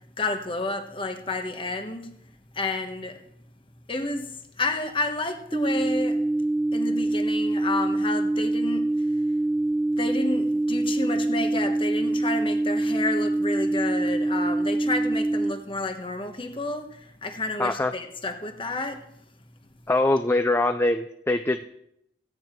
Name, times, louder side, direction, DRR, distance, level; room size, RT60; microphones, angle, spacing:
voice 1, 0.2-2.1 2.6-3.1 3.9-4.2 4.6-6.2 6.7-8.8 10.0-16.9 17.2-19.0, left 2 dB, 30° left, 6 dB, 1.3 m, -30 dB
sound 1, 5.5-15.5, right 2 dB, 10° right, 0.9 m, -25 dB
voice 2, 17.6-18.0 19.9-21.6, left 2 dB, 15° left, 8 dB, 0.5 m, -23 dB
16.0 x 9.6 x 4.6 m, 0.76 s
head